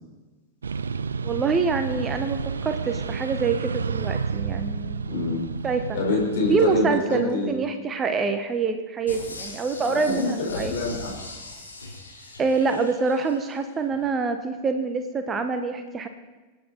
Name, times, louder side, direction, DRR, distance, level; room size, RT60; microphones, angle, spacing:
sound 1, 0.6-6.9, right 5 dB, 70° right, 0.5 m, -30 dB
voice 1, 1.2-5.1 5.6-6.0 6.5-10.7 12.4-16.1, right 4 dB, 20° right, 7 dB, 1.1 m, -25 dB
voice 2, 5.1-5.4 5.9-7.5 9.9-11.3, left 3 dB, 55° left, -2 dB, 4.5 m, -26 dB
sound 2, 9.1-13.5 13.9-14.0, left 2 dB, 75° left, 3.3 m, -40 dB
26.0 x 9.2 x 4.2 m, 1.2 s
figure-of-eight pair, 90°, 0 cm